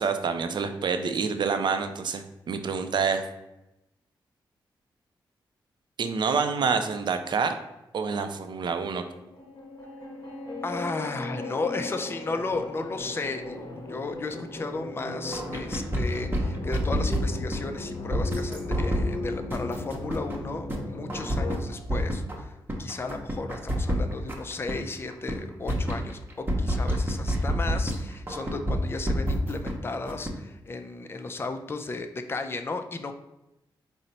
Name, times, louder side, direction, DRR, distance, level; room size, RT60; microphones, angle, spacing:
voice 1, 0.0-3.3 6.0-7.5 7.9-9.0, right 5 dB, 60° right, 7 dB, 0.4 m, -27 dB
sound 1, 8.9-21.6, left 2 dB, 50° left, 0.8 m, -37 dB
voice 2, 10.6-22.5 22.8-33.1, left 3 dB, 25° left, 6 dB, 0.4 m, -34 dB
sound 2, 15.3-17.6 18.1-19.1 19.5-20.4 20.7-20.8 21.1-22.4 22.7-24.8 25.1-25.4 25.7-28.0 28.3-29.7 30.1-30.3, equal, 25° right, 0.8 m, -27 dB
4.1 x 2.0 x 3.9 m, 0.93 s
cardioid pair, 55°, 9 cm